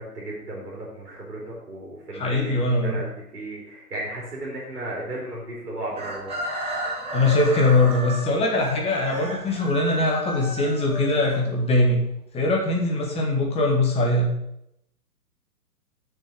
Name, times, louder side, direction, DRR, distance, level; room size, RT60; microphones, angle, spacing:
voice 1, 0.0-6.3, right 1 dB, 70° right, -5 dB, 3.5 m, -35 dB
voice 2, 2.1-3.0 7.1-12.0 12.3-14.3, left 2 dB, 10° left, 0 dB, 1.8 m, -22 dB
Chicken rooster, 5.9-11.9, right 1 dB, 10° right, 2.3 m, -33 dB
6.7 x 6.3 x 7.5 m, 0.79 s
figure-of-eight pair, 120°, 47 cm